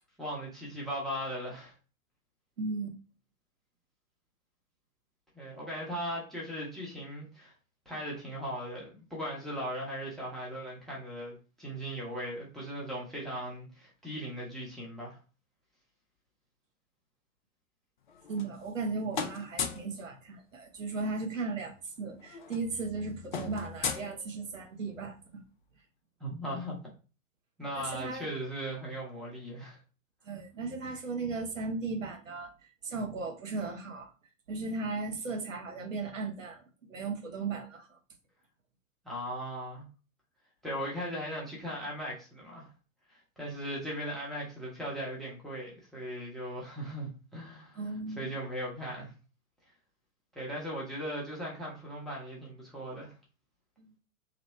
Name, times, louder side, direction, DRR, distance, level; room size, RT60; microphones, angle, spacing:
voice 1, 0.2-1.7 5.3-7.5 7.9-15.2 26.2-26.8 27.6-29.8 39.0-39.8 40.6-42.7 43.1-49.1 50.4-53.1, equal, ahead, 0.7 m, -38 dB
voice 2, 2.6-2.9 18.3-25.1 27.8-28.3 30.2-32.5 32.8-34.1 34.5-36.6 36.9-37.9 47.8-48.3 53.8-53.9, right 3 dB, 65° right, 1.0 m, -36 dB
sound 1, 18.1-18.9 19.1-19.9 21.3-21.4 21.7-21.9 22.1-24.8, left 6 dB, 35° left, 0.4 m, -37 dB
2.9 x 2.6 x 3.2 m
figure-of-eight pair, 110°, 42 cm